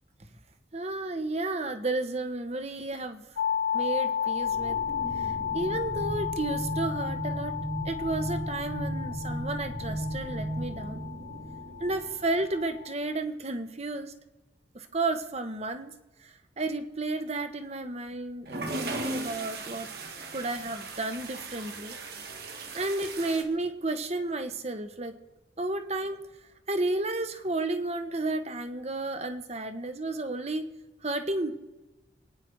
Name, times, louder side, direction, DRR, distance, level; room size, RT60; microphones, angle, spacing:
voice 1, 0.7-3.2 3.7-4.8 5.1-7.5 7.8-11.0 11.8-14.1 14.7-15.9 16.2-19.9 20.3-22.0 22.7-25.1 25.6-26.2 26.7-30.6 31.0-31.5, right 2 dB, 35° right, 8 dB, 1.3 m, -32 dB
sound 1, 3.4-13.1, left 8 dB, 85° left, 0.6 m, -33 dB
sound 2, 4.4-12.6, right 1 dB, 75° right, 5.2 m, -36 dB
sound 3, 18.5-23.4, right 2 dB, 60° right, 2.0 m, -37 dB
26.5 x 9.8 x 4.8 m, 1.1 s
head